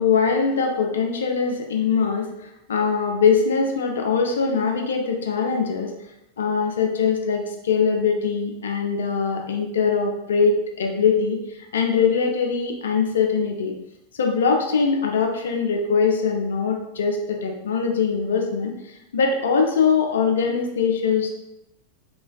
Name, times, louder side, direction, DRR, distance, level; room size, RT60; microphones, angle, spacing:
voice 1, 0.0-2.3 2.7-5.9 6.4-11.4 11.7-13.7 14.1-18.7 19.1-21.3, left 5 dB, 65° left, 2 dB, 0.4 m, -22 dB
3.2 x 2.4 x 2.2 m, 0.88 s
figure-of-eight pair, 90°, 0 cm